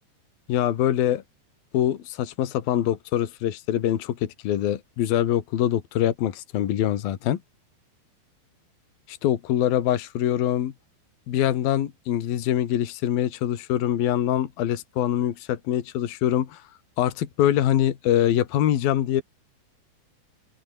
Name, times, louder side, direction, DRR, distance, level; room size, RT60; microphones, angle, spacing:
voice 1, 0.5-1.2 1.7-7.4 9.1-10.7 11.3-16.6 17.0-19.2, left 11 dB, 65° left, 3.6 m, -24 dB
open air
omnidirectional pair, 4.8 m